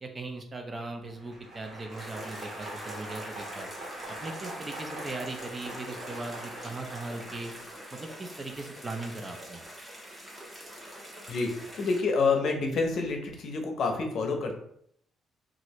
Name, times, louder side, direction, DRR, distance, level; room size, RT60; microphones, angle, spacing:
voice 1, 0.0-3.7 4.1-7.5 7.9-9.6, right 2 dB, 30° right, 4 dB, 0.5 m, -39 dB
Applause, 1.0-8.0, right 1 dB, 50° right, 1.2 m, -42 dB
sound 1, 2.0-12.0, equal, 10° right, 1.0 m, -45 dB
voice 2, 11.3-14.5, left 4 dB, 65° left, 3 dB, 0.6 m, -28 dB
2.7 x 2.5 x 3.1 m, 0.68 s
cardioid pair, 90°, 0 cm